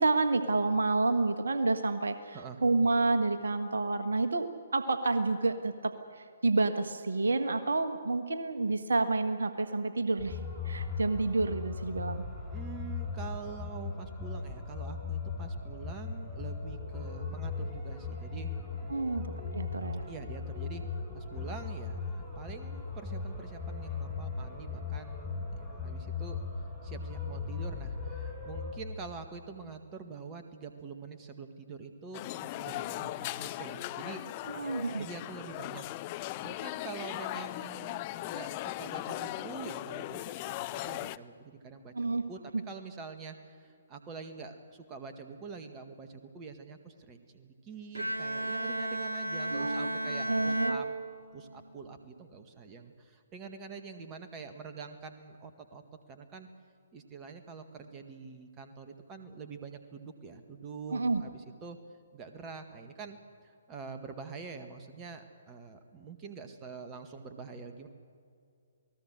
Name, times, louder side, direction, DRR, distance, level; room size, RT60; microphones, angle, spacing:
voice 1, 0.0-10.4 10.6-12.3 18.9-19.3 19.5-20.0 34.4-35.1 41.9-42.2 42.5-42.6 49.5-50.8 60.9-61.2, right 3 dB, 70° right, 8 dB, 1.5 m, -29 dB
sound 1, 10.2-28.7, left 4 dB, 5° left, 5.9 m, -38 dB
voice 2, 12.5-18.5 18.8-19.1 20.1-20.8 21.1-26.4 26.8-34.2 34.5-35.8 36.2-41.9 42.3-42.4 42.7-50.9 51.3-55.8 56.1-56.5 56.9-61.8 62.1-63.2 63.7-67.9, right 5 dB, 20° right, 6 dB, 1.8 m, -45 dB
sound 2, 32.1-41.2, left 17 dB, 30° left, 0.5 m, -38 dB
Bowed string instrument, 47.9-51.7, right 1 dB, 85° right, 1.2 m, -34 dB
28.5 x 19.0 x 6.5 m, 2.3 s
figure-of-eight pair, 130°, 0 cm